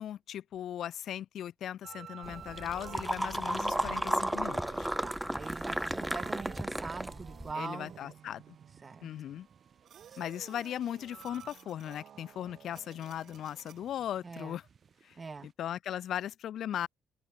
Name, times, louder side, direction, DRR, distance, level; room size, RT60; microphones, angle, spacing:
voice 1, 0.0-4.9 7.5-8.4 9.0-9.5 10.2-14.6 15.0-15.2 15.4-16.9, left 10 dB, 70° left, 0.6 m, -38 dB
sound 1, 1.8-13.9, right 9 dB, 65° right, 0.8 m, -50 dB
sound 2, 2.2-7.5, right 1 dB, 5° right, 0.3 m, -34 dB
sound 3, 3.3-15.5, right 6 dB, 45° right, 6.6 m, -65 dB
voice 2, 5.0-8.0 8.8-9.1 10.1-10.2 14.2-14.6 15.2-15.5, right 4 dB, 30° right, 1.4 m, -42 dB
open air
cardioid pair, 90°, 0 cm